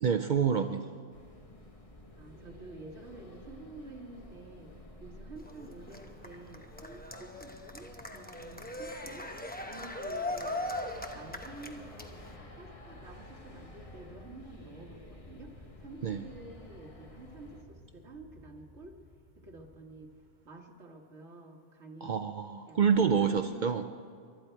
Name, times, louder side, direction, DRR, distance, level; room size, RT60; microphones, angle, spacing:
voice 1, 0.0-0.9 16.0-16.2 22.0-23.8, right 6 dB, 55° right, 9 dB, 0.6 m, -27 dB
sound 1, 1.1-17.6, left 1 dB, 30° left, 1.4 m, -52 dB
voice 2, 2.2-9.3 9.7-10.6 11.1-12.3 12.5-19.0 19.4-20.1 20.5-22.2 22.7-23.9, right 2 dB, 75° right, 1 dB, 1.9 m, -50 dB
Cheering, 5.4-12.4, left 1 dB, 10° left, 0.8 m, -39 dB
sound 2, 10.6-20.7, left 1 dB, 50° left, 3.1 m, -55 dB
23.0 x 12.5 x 4.5 m, 2.3 s
omnidirectional pair, 1.2 m